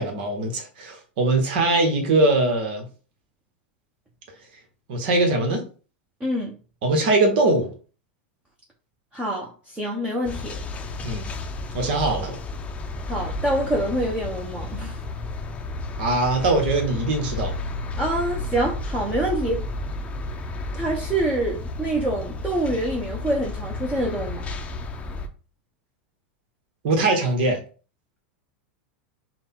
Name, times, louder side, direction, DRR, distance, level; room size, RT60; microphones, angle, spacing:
voice 1, 0.0-2.8 4.9-5.6 6.8-7.7 11.0-11.3 11.7-12.4 16.0-17.5 26.8-27.6, right 2 dB, 65° right, 4 dB, 1.4 m, -21 dB
voice 2, 6.2-6.6 9.1-10.6 13.1-15.0 18.0-19.6 20.8-24.5, right 1 dB, 20° right, -2 dB, 1.0 m, -26 dB
sound 1, 10.3-25.3, left 2 dB, 25° left, 0.6 m, -32 dB
3.9 x 2.4 x 3.7 m, 0.37 s
hypercardioid pair, 100°, 6 cm